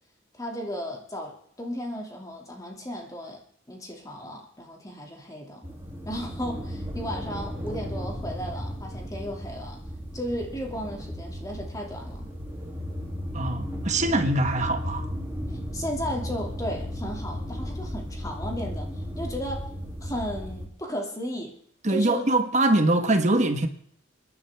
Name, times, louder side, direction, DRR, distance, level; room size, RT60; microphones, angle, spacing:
voice 1, 0.3-3.4 3.7-5.6 6.0-9.8 10.1-12.3 15.5-19.6 20.0-21.6 21.9-22.3, equal, 15° left, 2.6 m, -35 dB
sound 1, 5.6-20.7, equal, 10° right, 2.9 m, -35 dB
voice 2, 13.3-15.1 21.8-23.7, right 2 dB, 35° right, 1.5 m, -23 dB
26.5 x 11.0 x 3.6 m
head